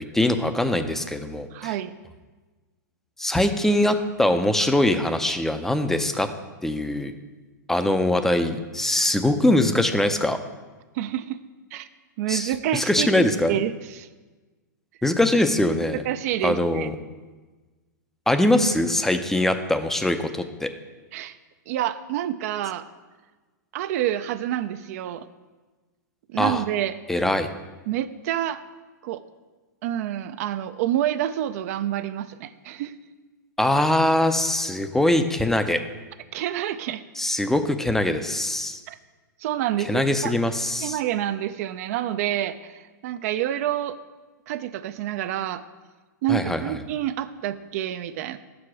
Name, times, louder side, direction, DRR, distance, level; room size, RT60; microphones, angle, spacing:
voice 1, 0.0-1.7 3.2-6.3 6.6-7.1 7.7-10.4 12.3-13.6 15.0-16.0 16.4-16.9 18.3-20.7 26.4-26.6 27.1-27.5 33.6-35.8 37.2-38.8 39.9-41.0 46.3-46.8, left 1 dB, 5° left, 8 dB, 0.4 m, -22 dB
voice 2, 1.5-1.9 10.9-11.4 11.7-11.9 12.2-14.1 16.1-16.9 21.1-21.3 21.7-22.9 23.7-25.3 26.3-27.0 27.9-28.6 29.0-29.2 29.8-33.0 36.3-37.0 38.9-39.0 39.4-40.3 40.8-44.0 44.5-45.6 46.2-48.4, right 12 dB, 55° right, 12 dB, 0.4 m, -28 dB
5.9 x 4.8 x 5.9 m, 1.3 s
hypercardioid pair, 120°, 10 cm